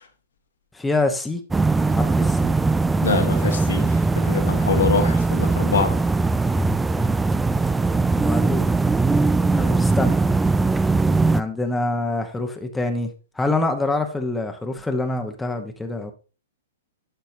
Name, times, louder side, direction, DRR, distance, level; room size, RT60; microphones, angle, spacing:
voice 1, 0.7-1.4 1.9-2.5 8.1-8.6 9.5-10.1 11.3-13.1 13.3-16.1, left 2 dB, 5° left, 1.0 m, -25 dB
sound 1, 1.5-11.4, right 3 dB, 10° right, 0.3 m, -20 dB
voice 2, 3.0-3.9 4.3-6.0, left 5 dB, 75° left, 1.6 m, -24 dB
11.5 x 4.5 x 2.7 m
figure-of-eight pair, 115°, 0 cm